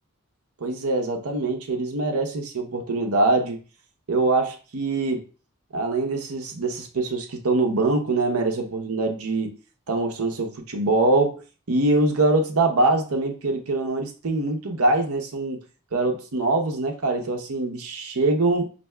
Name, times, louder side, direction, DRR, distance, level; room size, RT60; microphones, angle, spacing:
voice 1, 0.6-3.6 4.1-5.2 5.7-9.5 9.9-11.4 11.7-15.6 15.9-18.7, right 2 dB, 90° right, 0.7 m, -23 dB
5.3 x 2.7 x 2.2 m
head